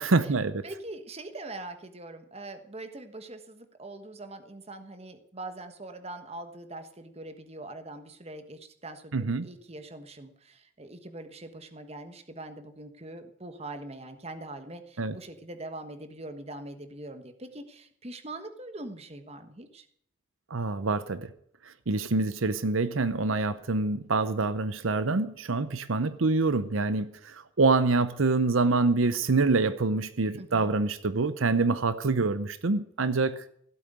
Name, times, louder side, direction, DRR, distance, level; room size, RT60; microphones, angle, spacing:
voice 1, 0.0-0.6 9.1-9.5 15.0-15.2 20.5-21.3 21.7-33.4, right 3 dB, 85° right, 0.8 m, -26 dB
voice 2, 0.6-9.1 9.4-19.9 30.4-30.7, right 2 dB, 30° right, 1.4 m, -42 dB
16.0 x 8.4 x 9.3 m
head